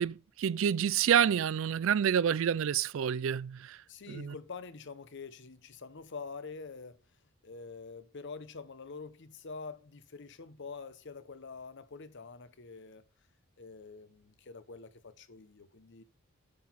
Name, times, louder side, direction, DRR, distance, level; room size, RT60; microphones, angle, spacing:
voice 1, 0.0-3.8 4.1-4.3, right 8 dB, 65° right, 0.4 m, -28 dB
voice 2, 3.9-7.0 7.4-13.0 13.6-16.0, left 4 dB, 60° left, 0.8 m, -46 dB
8.7 x 6.0 x 4.1 m
head